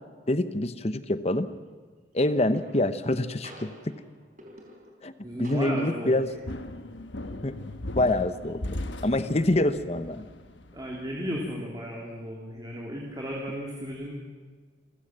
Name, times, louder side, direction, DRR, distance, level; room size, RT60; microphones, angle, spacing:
voice 1, 0.3-1.5 2.1-4.0 5.0-5.1 5.4-6.3 7.4-7.6 7.9-8.6 9.0-10.3, left 1 dB, 35° left, 12 dB, 1.0 m, -26 dB
sound 1, 1.3-1.7 2.5-3.1 3.4-5.1 5.4-6.2, equal, 40° right, 4.3 m, -49 dB
voice 2, 5.2-6.2 9.5-9.6 10.7-14.1, equal, 20° right, -2 dB, 3.0 m, -34 dB
sound 2, 6.1-11.1, left 1 dB, 75° left, 1.3 m, -38 dB
28.0 x 15.5 x 7.6 m, 1.5 s
head